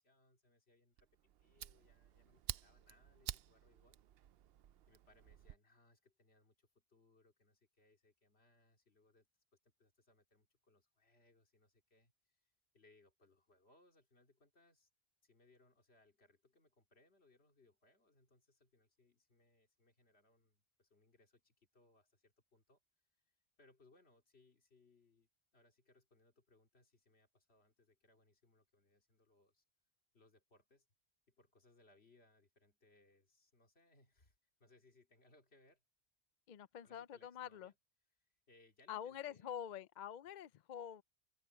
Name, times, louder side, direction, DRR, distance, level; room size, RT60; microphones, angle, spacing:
voice 1, 0.0-4.0 4.9-9.3 9.6-14.9 15.2-22.8 23.3-29.6 30.1-30.9 31.3-35.8 36.8-37.8 38.2-39.6, left 2 dB, 80° left, 2.9 m, -71 dB
Fire, 1.0-5.6, right 11 dB, 70° right, 0.8 m, -50 dB
voice 2, 36.5-37.7 38.9-41.0, left 9 dB, 55° left, 0.6 m, -47 dB
open air
omnidirectional pair, 1.1 m